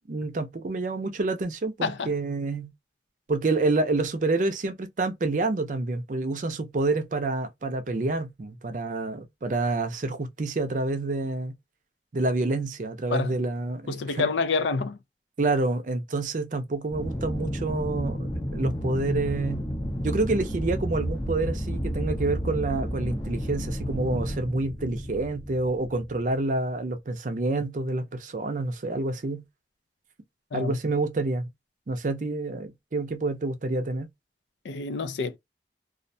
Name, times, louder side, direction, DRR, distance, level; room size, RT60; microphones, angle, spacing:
voice 1, 0.1-2.7 3.3-11.5 12.1-14.3 15.4-19.6 20.0-29.4 30.5-31.5 31.9-34.1, right 2 dB, 45° right, 0.5 m, -28 dB
voice 2, 13.9-15.0 30.5-30.7 34.6-35.4, left 4 dB, 85° left, 0.4 m, -27 dB
Aircraft, 16.9-26.4, equal, 20° left, 0.5 m, -31 dB
2.4 x 2.1 x 2.5 m
head